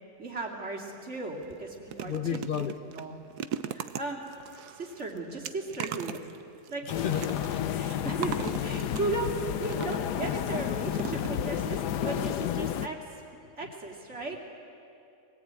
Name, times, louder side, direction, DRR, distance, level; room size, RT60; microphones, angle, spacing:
voice 1, 0.2-2.4 2.9-3.1 3.7-4.3 4.7-6.2 6.7-6.8 7.7-9.3 9.6-13.0 13.6-14.4, right 3 dB, 40° right, -2 dB, 2.9 m, -36 dB
sound 1, 0.9-1.1 1.4-10.2 10.9-11.7 12.1-12.2 12.5-12.6, right 9 dB, 70° right, 1.3 m, -40 dB
voice 2, 2.0-2.8 6.8-8.1, left 8 dB, 45° left, 10 dB, 0.7 m, -33 dB
sound 2, 6.9-12.9, left 10 dB, 75° left, 1.3 m, -31 dB
22.5 x 18.5 x 8.9 m, 2.7 s
omnidirectional pair, 1.8 m